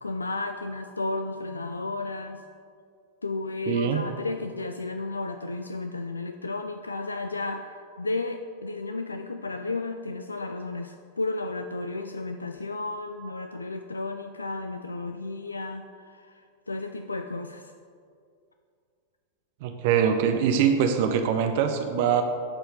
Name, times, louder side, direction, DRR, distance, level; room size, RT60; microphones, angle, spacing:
voice 1, 0.0-2.4 3.2-17.7, left 3 dB, 80° left, 7 dB, 0.3 m, -33 dB
voice 2, 3.7-4.0 19.6-22.2, right 7 dB, 50° right, 7 dB, 0.5 m, -23 dB
11.0 x 4.4 x 5.2 m, 2.2 s
figure-of-eight pair, 90°, 0 cm